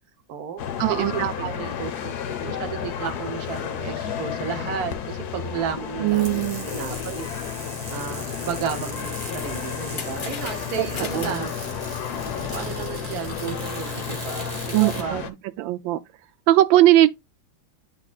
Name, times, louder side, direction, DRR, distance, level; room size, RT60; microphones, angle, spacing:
voice 1, 0.3-0.6 0.9-2.1 2.4-7.3 7.9-11.6 12.5-15.3, right 8 dB, 55° right, 1.2 m, -33 dB
sound 1, 0.6-15.3, left 8 dB, 65° left, 1.1 m, -32 dB
voice 2, 0.8-1.5 6.0-6.7 10.8-11.5 14.7-16.0 16.5-17.1, right 14 dB, 75° right, 1.2 m, -20 dB
sound 2, 6.1-15.1, left 1 dB, 30° right, 1.2 m, -36 dB
sound 3, 9.2-13.9, left 5 dB, 85° left, 0.4 m, -40 dB
9.7 x 4.1 x 2.4 m
omnidirectional pair, 2.3 m